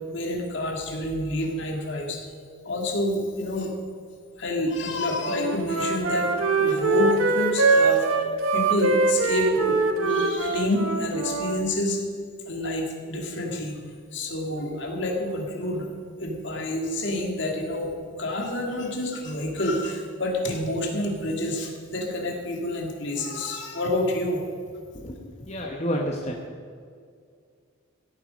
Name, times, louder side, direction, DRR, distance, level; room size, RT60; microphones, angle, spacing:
voice 1, 0.1-2.3 2.6-3.7 4.4-8.1 8.5-12.0 12.4-13.8 14.1-15.9 16.2-24.4, left 1 dB, 55° left, 1 dB, 2.4 m, -28 dB
Wind instrument woodwind instrument, 5.2-11.6, right 3 dB, 85° right, 1.2 m, -23 dB
voice 2, 24.9-26.3, equal, 30° left, 0 dB, 1.0 m, -30 dB
15.5 x 9.4 x 5.2 m, 2.2 s
head